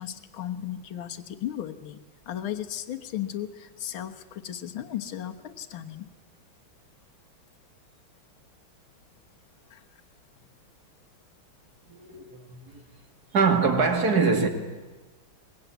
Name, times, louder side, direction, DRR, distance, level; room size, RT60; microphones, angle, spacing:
voice 1, 0.0-2.0 2.3-6.1 9.7-9.8, left 11 dB, 75° left, 2.1 m, -35 dB
voice 2, 11.9-12.8 13.3-14.5, right 4 dB, 50° right, 2.7 m, -23 dB
23.5 x 21.5 x 9.3 m
omnidirectional pair, 2.2 m